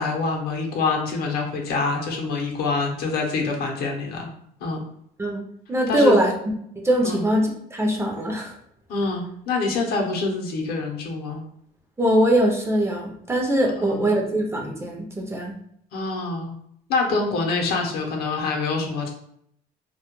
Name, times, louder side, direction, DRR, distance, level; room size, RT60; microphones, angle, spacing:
voice 1, 0.0-4.3 4.6-4.8 5.9-6.2 7.0-7.2 8.9-11.4 13.8-14.2 15.9-16.6 16.9-19.1, left 3 dB, 70° left, 1 dB, 0.6 m, -25 dB
voice 2, 5.7-6.3 6.8-8.5 12.0-15.5, right 1 dB, 15° right, 0 dB, 0.5 m, -22 dB
2.2 x 2.1 x 2.9 m, 0.71 s
cardioid pair, 110°, 17 cm